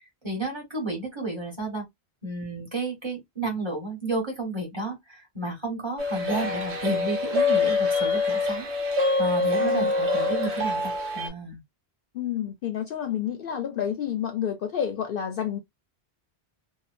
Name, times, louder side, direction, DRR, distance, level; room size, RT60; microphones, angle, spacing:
voice 1, 0.2-1.8 2.2-8.7 9.2-11.6, right 2 dB, 25° right, 1.3 m, -32 dB
sound 1, 6.0-11.3, left 3 dB, 80° right, 1.1 m, -25 dB
voice 2, 9.6-9.9 12.1-15.6, left 9 dB, 65° left, 0.7 m, -29 dB
2.7 x 2.1 x 2.4 m
omnidirectional pair, 1.1 m